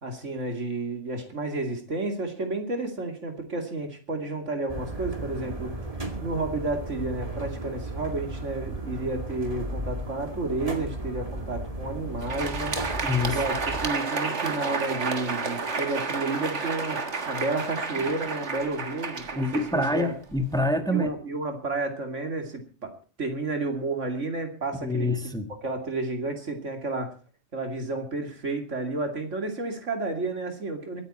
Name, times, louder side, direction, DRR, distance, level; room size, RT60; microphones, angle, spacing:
voice 1, 0.0-5.7 6.2-12.8 13.3-20.1 20.8-22.9 23.2-25.1 25.6-27.1 27.5-31.0, right 2 dB, 90° right, 4 dB, 2.9 m, -31 dB
sound 1, 4.7-13.9, right 1 dB, 30° right, 2.4 m, -35 dB
Crowd, 12.1-20.6, right 4 dB, 70° right, 1.9 m, -31 dB
voice 2, 13.0-13.4 19.3-21.1 24.8-25.5, left 1 dB, 5° left, 7 dB, 1.4 m, -26 dB
23.5 x 9.5 x 4.3 m, 0.36 s
omnidirectional pair, 1.2 m